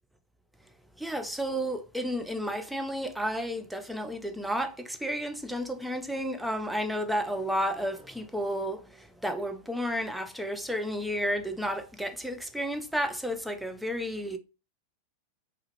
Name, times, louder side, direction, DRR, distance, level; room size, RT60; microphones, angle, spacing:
voice 1, 1.0-14.4, equal, ahead, 0.4 m, -32 dB
2.3 x 2.1 x 3.0 m
figure-of-eight pair, 90°, 0 cm